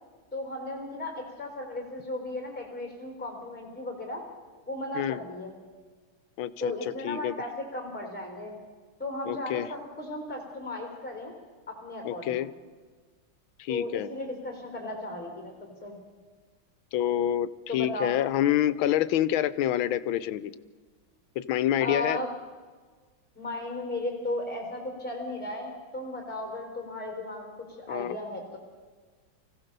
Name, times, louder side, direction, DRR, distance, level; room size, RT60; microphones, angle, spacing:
voice 1, 0.3-4.2 4.7-5.6 6.6-8.5 9.0-11.3 11.7-12.4 13.7-15.5 15.8-16.0 17.7-18.1 21.8-22.3 23.4-28.6, left 1 dB, 5° left, 1 dB, 3.5 m, -35 dB
voice 2, 6.4-6.7 7.0-7.3 9.3-9.7 12.0-12.5 13.6-14.1 16.9-20.5 21.4-22.2 27.9-28.2, left 11 dB, 80° left, 15 dB, 1.5 m, -27 dB
25.0 x 16.0 x 6.8 m, 1.5 s
omnidirectional pair, 2.2 m